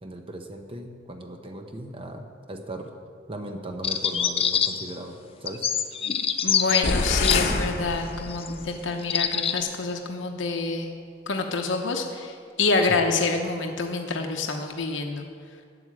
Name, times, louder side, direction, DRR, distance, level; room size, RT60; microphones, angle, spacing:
voice 1, 0.0-2.9 3.3-5.7 12.9-13.0, right 1 dB, 30° right, 4 dB, 0.8 m, -38 dB
sound 1, 3.8-5.0 5.5-7.4 8.2-8.5 9.0-9.6, left 8 dB, 30° left, 0.5 m, -25 dB
voice 2, 6.4-10.9 11.3-15.3, left 3 dB, 80° left, 3 dB, 0.9 m, -27 dB
sound 2, 6.8-8.7, left 2 dB, 50° left, 1.0 m, -26 dB
9.6 x 8.0 x 7.6 m, 2.1 s
head